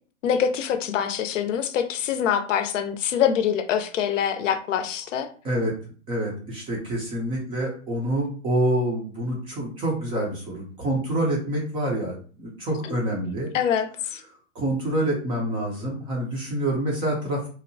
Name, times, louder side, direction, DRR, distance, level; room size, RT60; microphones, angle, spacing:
voice 1, 0.2-5.3 12.9-13.0 13.5-14.2, left 8 dB, 80° left, 9 dB, 0.6 m, -25 dB
voice 2, 6.1-13.5 14.5-17.4, right 1 dB, 15° right, -2 dB, 0.4 m, -27 dB
2.8 x 2.0 x 2.6 m, 0.41 s
hypercardioid pair, 135°, 37 cm